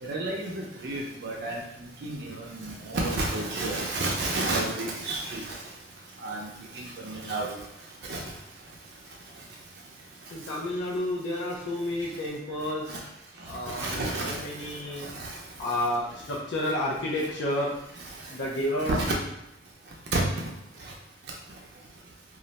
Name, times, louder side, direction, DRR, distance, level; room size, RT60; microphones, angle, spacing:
voice 1, 0.0-1.6 2.0-5.6 6.2-6.5 6.7-7.6 8.1-8.2 12.9-13.0 13.7-14.4 15.0-15.3 18.8-19.1 20.1-20.2, right 2 dB, 70° right, -1 dB, 0.5 m, -30 dB
voice 2, 10.3-13.0 13.5-15.1 15.6-17.7 18.3-18.9, left 1 dB, 85° left, -4 dB, 0.5 m, -30 dB
2.4 x 2.1 x 3.9 m, 0.86 s
head